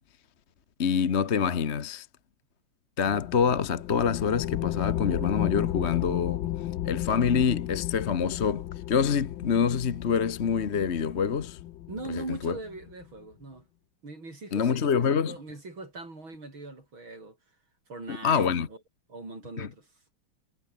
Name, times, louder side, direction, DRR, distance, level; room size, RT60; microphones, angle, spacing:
voice 1, 0.8-2.1 3.0-6.4 6.8-11.6 12.1-12.6 14.5-15.3 18.1-18.7 19.6-19.7, left 6 dB, 40° left, 1.1 m, -26 dB
sound 1, 3.0-13.1, left 13 dB, 70° left, 1.4 m, -34 dB
voice 2, 11.9-13.7 14.0-17.4 17.9-18.8 19.1-19.9, right 2 dB, 70° right, 7.8 m, -41 dB
omnidirectional pair, 2.3 m